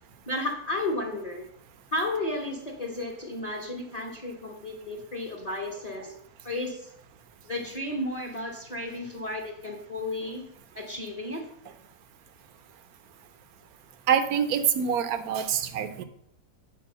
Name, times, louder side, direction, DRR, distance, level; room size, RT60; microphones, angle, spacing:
voice 1, 0.3-1.5 1.9-6.1 6.4-6.9 7.4-10.4 10.7-11.5, left 2 dB, 25° left, 3 dB, 1.0 m, -33 dB
voice 2, 14.1-16.0, right 8 dB, 70° right, 11 dB, 1.1 m, -25 dB
9.0 x 4.7 x 6.7 m, 0.75 s
omnidirectional pair, 1.8 m